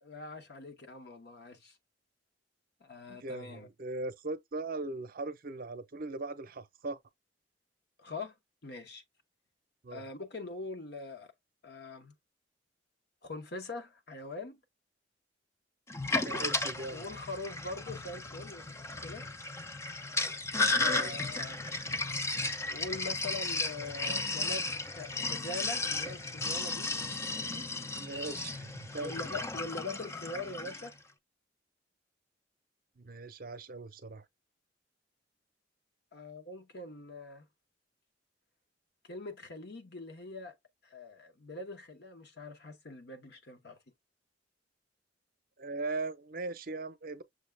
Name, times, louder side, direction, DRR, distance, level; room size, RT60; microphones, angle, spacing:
voice 1, 0.0-1.7 2.8-3.7 8.0-8.3 8.6-9.0 9.9-11.3 11.6-12.1 13.2-14.6 16.9-19.2 20.8-21.6 22.7-26.9 27.3-27.7 29.0-31.0 36.1-37.4 39.0-40.5 40.8-43.8, left 3 dB, 65° left, 1.1 m, -43 dB
voice 2, 3.1-7.0 9.8-10.1 16.1-17.1 20.7-21.2 27.9-29.2 33.0-34.3 45.6-47.2, right 3 dB, 50° right, 0.6 m, -39 dB
Sink (filling or washing), 15.9-30.9, left 3 dB, 15° left, 0.4 m, -34 dB
6.4 x 2.3 x 3.3 m
head